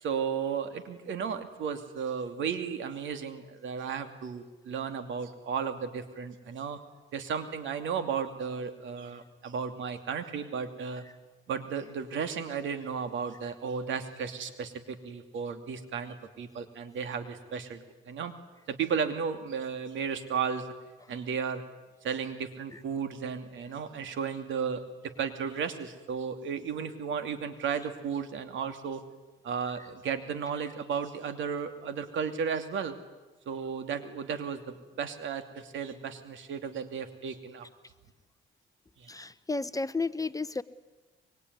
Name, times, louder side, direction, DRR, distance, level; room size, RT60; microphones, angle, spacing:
voice 1, 0.0-6.8 7.1-11.0 11.5-18.3 18.7-20.7 21.1-21.6 22.0-24.8 25.2-29.0 29.4-32.9 33.5-34.6 35.0-37.7 39.0-39.1, right 6 dB, 75° right, 9 dB, 2.7 m, -34 dB
voice 2, 39.1-40.6, left 3 dB, 15° left, 14 dB, 0.9 m, -32 dB
24.5 x 23.5 x 9.6 m, 1.2 s
cardioid pair, 90°, 20 cm